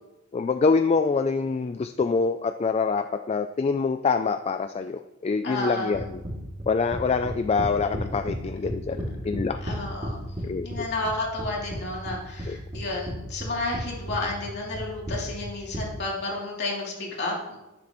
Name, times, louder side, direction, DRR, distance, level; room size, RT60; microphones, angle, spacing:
voice 1, 0.3-6.2 6.7-9.6 10.4-10.9 12.5-12.6, left 4 dB, 30° left, 9 dB, 0.3 m, -25 dB
voice 2, 5.4-6.0 7.6-7.7 9.6-10.3 10.6-17.6, left 2 dB, 55° left, -3 dB, 2.9 m, -31 dB
sound 1, 5.9-8.4 8.6-10.4 10.7-11.8 12.1-13.1 13.4-13.8 14.1-15.8, right 1 dB, 30° right, 2.5 m, -32 dB
11.0 x 9.8 x 3.1 m, 1.0 s
head